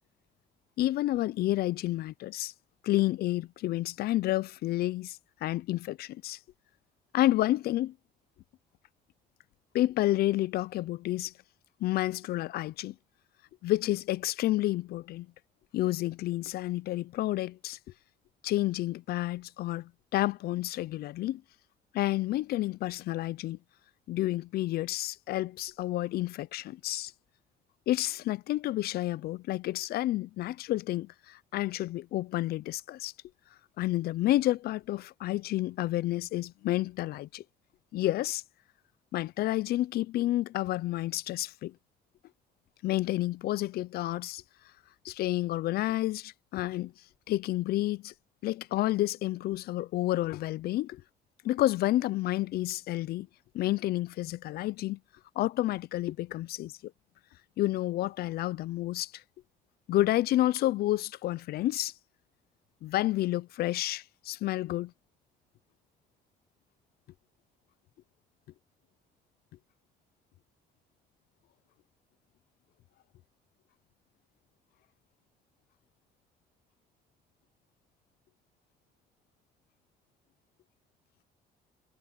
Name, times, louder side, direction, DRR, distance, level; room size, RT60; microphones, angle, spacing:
voice 1, 0.8-2.5 2.8-6.4 7.1-7.9 9.7-11.3 11.8-13.0 13.6-15.3 15.7-17.8 18.4-21.4 21.9-23.6 24.1-27.1 27.9-33.1 33.8-37.4 37.9-38.4 39.1-41.7 42.8-44.4 45.0-46.9 47.3-48.1 48.4-51.0 51.4-53.3 53.5-55.0 55.4-56.9 57.6-59.2 59.9-61.9 62.8-64.9, left 15 dB, 65° left, 0.5 m, -30 dB
cardioid pair, 110°, 17 cm